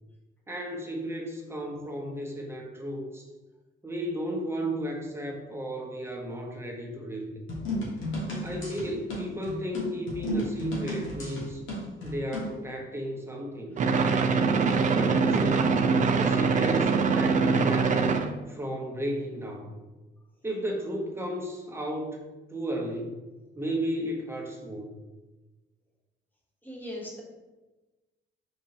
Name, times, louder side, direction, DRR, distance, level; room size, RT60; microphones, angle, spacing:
voice 1, 0.5-3.3 3.8-7.4 8.4-11.6 12.0-13.8 14.9-15.9 16.2-18.0 18.5-19.7 20.4-22.2 22.5-23.2 23.6-24.9, equal, 10° right, 0 dB, 0.7 m, -34 dB
sound 1, 7.5-12.6, equal, 75° left, 1.1 m, -33 dB
sound 2, 13.8-18.3, right 5 dB, 40° right, 0.4 m, -23 dB
voice 2, 26.6-27.2, left 1 dB, 10° left, -3 dB, 1.0 m, -38 dB
3.8 x 2.7 x 2.7 m, 1.1 s
cardioid pair, 90°, 20 cm